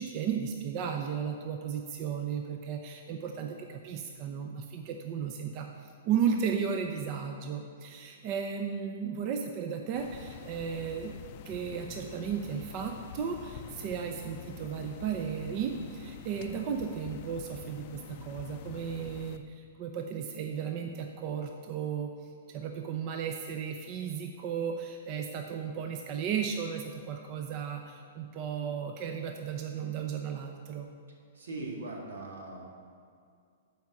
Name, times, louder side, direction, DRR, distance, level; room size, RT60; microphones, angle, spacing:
voice 1, 0.0-11.1 11.5-30.9, right 7 dB, 40° right, 4 dB, 0.6 m, -35 dB
sound 1, 9.9-19.4, left 8 dB, 50° left, 0.5 m, -46 dB
voice 2, 31.3-32.6, right 2 dB, 90° right, 0 dB, 1.8 m, -40 dB
7.4 x 4.7 x 7.0 m, 2.3 s
hypercardioid pair, 135°, 0 cm